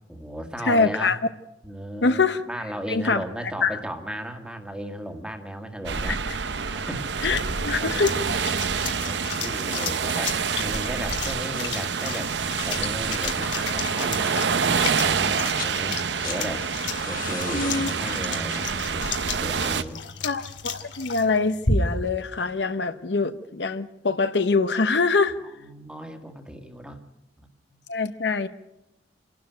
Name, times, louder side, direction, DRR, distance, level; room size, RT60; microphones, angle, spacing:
voice 1, 0.1-1.1 1.6-2.2 2.5-6.2 6.7-7.3 7.8-8.2 8.8-12.4 12.7-16.0 16.2-16.7 17.1-20.0 25.4-27.0 27.4-27.5, equal, 5° right, 5 dB, 1.8 m, -35 dB
voice 2, 0.6-1.2 2.0-2.4 2.9-3.2 3.6-3.8 6.1-6.2 7.2-8.1 17.5-17.9 20.2-25.4 27.9-28.5, left 4 dB, 70° left, 10 dB, 0.9 m, -24 dB
sound 1, 5.8-19.8, right 6 dB, 70° right, 0.8 m, -27 dB
sound 2, 6.6-22.2, left 4 dB, 85° left, 2.3 m, -34 dB
sound 3, 15.4-15.8 16.0-20.9 22.2-22.3, left 7 dB, 50° left, 1.4 m, -39 dB
27.5 x 12.0 x 9.1 m, 0.94 s
head